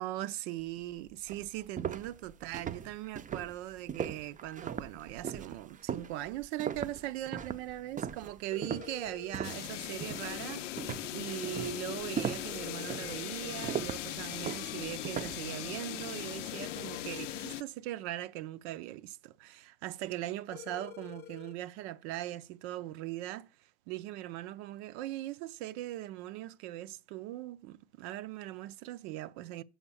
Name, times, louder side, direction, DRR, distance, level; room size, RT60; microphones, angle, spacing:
voice 1, 0.0-23.5 23.9-29.6, right 15 dB, 65° right, 0.7 m, -40 dB
sound 1, 0.8-0.9 1.3-9.7 10.0-10.4 10.8-15.5, right 8 dB, 20° right, 0.5 m, -39 dB
sound 2, 8.5-9.6 12.5-13.6 16.5-17.6 20.5-21.6, left 10 dB, 30° left, 0.4 m, -48 dB
sound 3, 9.4-17.6, left 13 dB, 90° left, 0.5 m, -39 dB
7.2 x 5.3 x 6.9 m
hypercardioid pair, 80°, 36 cm